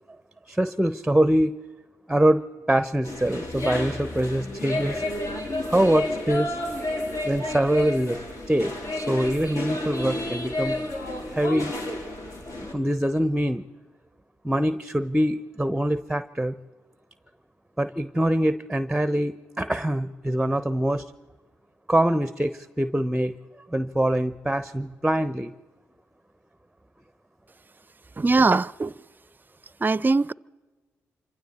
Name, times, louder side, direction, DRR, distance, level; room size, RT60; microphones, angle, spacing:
voice 1, 0.5-1.5 2.1-5.0 5.7-6.6 7.2-10.8 11.3-11.7 12.7-13.6 14.4-16.5 17.8-21.1 21.9-23.3 23.7-25.5, right 1 dB, 5° right, 0.9 m, -24 dB
sound 1, 3.0-12.7, left 1 dB, 55° left, 3.9 m, -31 dB
voice 2, 28.2-28.9 29.8-30.3, right 3 dB, 30° right, 0.5 m, -21 dB
27.5 x 26.0 x 4.3 m
hypercardioid pair, 45°, 7 cm